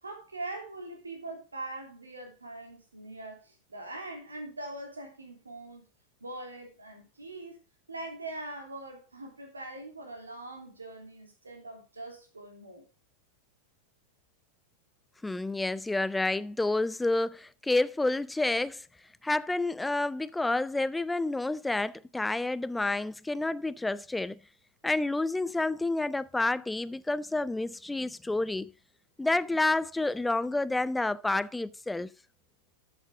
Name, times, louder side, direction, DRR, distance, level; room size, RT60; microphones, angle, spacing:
voice 1, 0.0-5.8 6.2-7.6 7.9-12.8, right 2 dB, 75° right, 3.1 m, -42 dB
voice 2, 15.2-18.8 19.2-24.4 24.8-28.7 29.2-32.1, left 2 dB, 5° left, 0.5 m, -29 dB
13.0 x 7.7 x 3.6 m
figure-of-eight pair, 90°, 0 cm